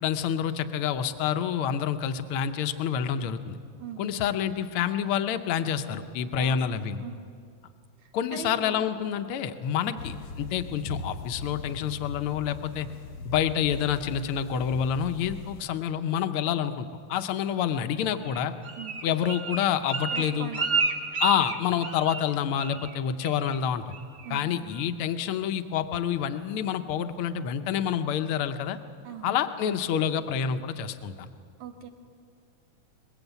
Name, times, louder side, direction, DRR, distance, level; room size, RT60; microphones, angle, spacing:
voice 1, 0.0-3.6 4.0-7.0 8.1-12.9 13.2-18.5 19.0-20.5 21.2-23.9 24.3-28.8 29.2-31.3, left 8 dB, 70° left, 9 dB, 1.3 m, -28 dB
voice 2, 3.8-4.2 6.4-7.2 8.0-8.8 9.9-10.0 18.8-19.0 20.1-20.9 24.2-24.7 29.0-29.5 31.6-31.9, right 8 dB, 80° right, 3 dB, 2.9 m, -41 dB
sound 1, 10.0-15.6, left 4 dB, 85° left, 1.1 m, -40 dB
Bird, 18.2-22.3 22.6-23.0 23.2-23.6 23.9-24.3 24.7-24.8, right 4 dB, 40° right, 1.5 m, -31 dB
22.5 x 20.5 x 8.1 m, 2.3 s
omnidirectional pair, 3.3 m